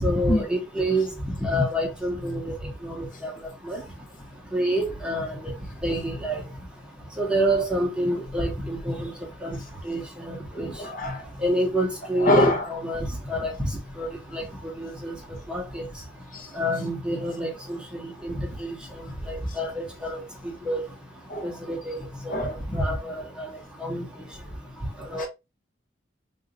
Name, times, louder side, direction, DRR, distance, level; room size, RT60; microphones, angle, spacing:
voice 1, 0.0-1.0 1.4-2.5 2.8-3.3 3.6-3.8 4.5-5.4 5.8-6.4 7.2-9.1 9.4-9.6 9.8-10.7 11.4-13.7 14.0-14.1 14.3-14.4 14.8-15.2 15.5-15.9 16.6-18.7 19.3-20.8 21.4-23.5 23.8-24.0 25.1-25.3, equal, 5° right, 1.3 m, -27 dB
voice 2, 10.6-11.3 12.2-12.6 16.3-16.5 21.3-21.4 22.3-22.5 25.2-25.3, left 1 dB, 45° left, 1.1 m, -23 dB
3.9 x 3.6 x 2.4 m
head